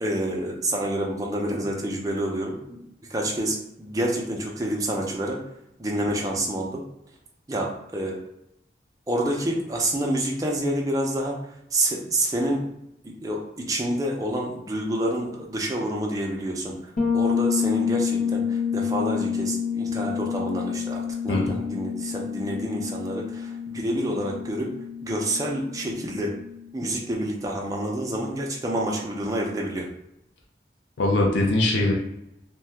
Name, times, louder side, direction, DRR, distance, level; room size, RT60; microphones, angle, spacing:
voice 1, 0.0-2.8 3.1-5.4 5.8-6.8 7.5-8.2 9.1-11.4 11.7-12.6 13.2-16.7 17.1-24.7 25.0-26.4 26.7-29.9, right 1 dB, 20° right, -1 dB, 0.4 m, -28 dB
Bass guitar, 17.0-26.6, left 7 dB, 50° left, 0.7 m, -28 dB
voice 2, 31.0-31.9, left 2 dB, 90° left, 1 dB, 0.5 m, -22 dB
2.7 x 2.2 x 3.3 m, 0.82 s
head